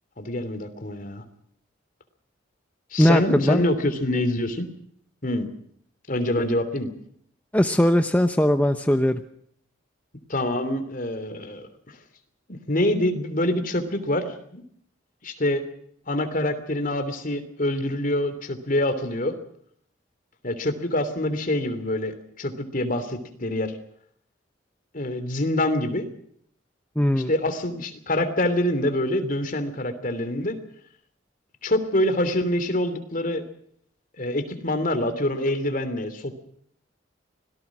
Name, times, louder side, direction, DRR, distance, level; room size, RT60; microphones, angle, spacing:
voice 1, 0.2-1.2 2.9-4.7 5.2-5.5 6.1-6.9 10.3-12.0 12.5-14.6 15.2-15.6 16.1-19.4 20.4-22.1 22.4-23.8 24.9-26.1 27.1-30.6 31.6-33.4 34.2-36.3, left 1 dB, 45° left, 9 dB, 3.1 m, -25 dB
voice 2, 3.0-3.6 7.5-9.2 27.0-27.3, equal, 10° left, 7 dB, 0.9 m, -19 dB
25.0 x 18.5 x 6.1 m, 0.66 s
head